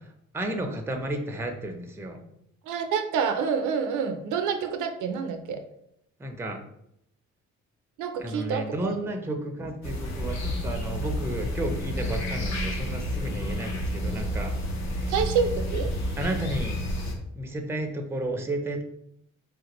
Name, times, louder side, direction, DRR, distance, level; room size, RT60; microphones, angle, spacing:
voice 1, 0.3-2.2 6.2-6.6 8.2-14.5 16.2-16.8 17.3-18.8, right 1 dB, 10° right, 4 dB, 0.4 m, -32 dB
voice 2, 2.7-5.6 8.0-9.2 15.1-15.9, right 6 dB, 80° right, 7 dB, 0.5 m, -28 dB
sound 1, 9.8-17.1, equal, 65° left, 0.8 m, -30 dB
3.2 x 2.5 x 2.9 m, 0.76 s
cardioid pair, 90°, 30 cm